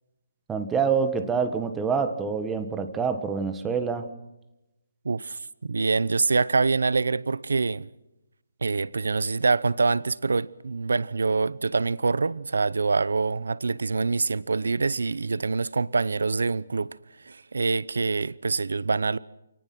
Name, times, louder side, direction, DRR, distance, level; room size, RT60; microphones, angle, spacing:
voice 1, 0.5-4.1, right 6 dB, 10° right, 1.4 m, -26 dB
voice 2, 5.0-7.9 8.6-16.9 17.2-19.2, right 4 dB, 80° right, 0.8 m, -25 dB
27.0 x 19.0 x 6.1 m
hypercardioid pair, 170°, 0 cm